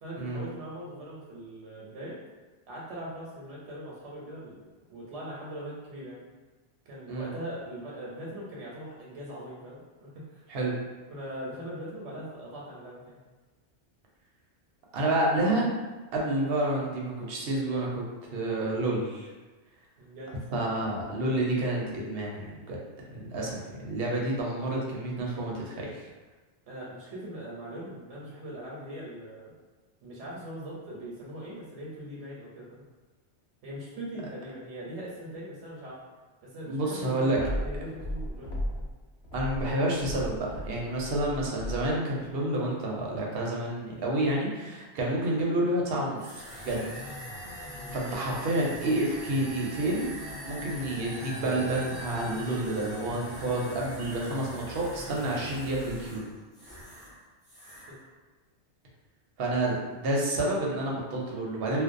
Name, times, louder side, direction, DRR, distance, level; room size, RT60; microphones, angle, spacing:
voice 1, 0.0-2.2 2.7-6.2 6.9-10.5 11.1-13.2 20.0-20.4 26.7-29.5 30.0-32.8 33.6-36.0 36.4-38.8 47.7-48.4, right 1 dB, 85° right, -5 dB, 0.9 m, -41 dB
voice 2, 14.9-15.7 16.1-18.0 18.3-19.3 20.5-22.8 23.1-26.0 36.7-37.4 39.3-47.0 47.9-50.1 50.4-56.2 59.4-61.8, right 1 dB, 65° right, -3 dB, 0.8 m, -29 dB
sound 1, 37.3-38.9 39.2-42.0, equal, 70° left, 0.8 m, -35 dB
sound 2, 46.2-57.2 57.4-58.0, equal, 15° left, 0.5 m, -41 dB
2.5 x 2.1 x 2.4 m, 1.3 s
omnidirectional pair, 1.2 m